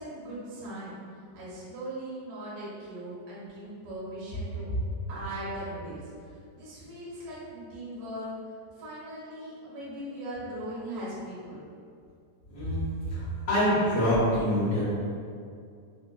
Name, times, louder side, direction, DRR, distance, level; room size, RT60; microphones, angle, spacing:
voice 1, 0.0-4.7 5.1-8.3 8.7-11.7, right 1 dB, 60° right, -9 dB, 1.5 m, -39 dB
voice 2, 12.5-12.8 13.1-14.8, equal, 60° left, -12 dB, 1.5 m, -25 dB
5.1 x 2.2 x 2.2 m, 2.3 s
omnidirectional pair, 3.4 m